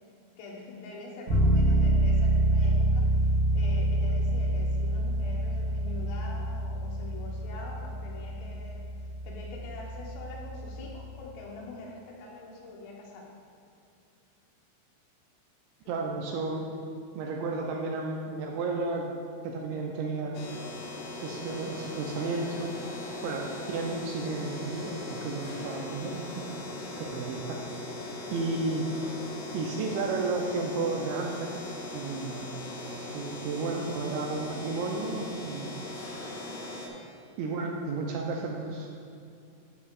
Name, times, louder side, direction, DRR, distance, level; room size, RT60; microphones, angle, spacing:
voice 1, 0.4-8.9 9.2-13.2 15.8-15.9, left 2 dB, 90° left, -3 dB, 3.9 m, -44 dB
Bass guitar, 1.3-11.0, right 1 dB, 45° right, 1.6 m, -27 dB
voice 2, 15.9-16.7 17.1-19.1 19.4-20.4 21.2-22.8 23.2-26.5 27.0-27.6 28.3-28.9 29.5-31.5 31.9-32.6 33.1-35.7 37.4-38.9, right 3 dB, 85° right, 0 dB, 2.6 m, -32 dB
sound 1, 20.3-36.9, left 2 dB, 75° left, 2.7 m, -39 dB
11.0 x 8.2 x 2.4 m, 2.4 s
omnidirectional pair, 5.6 m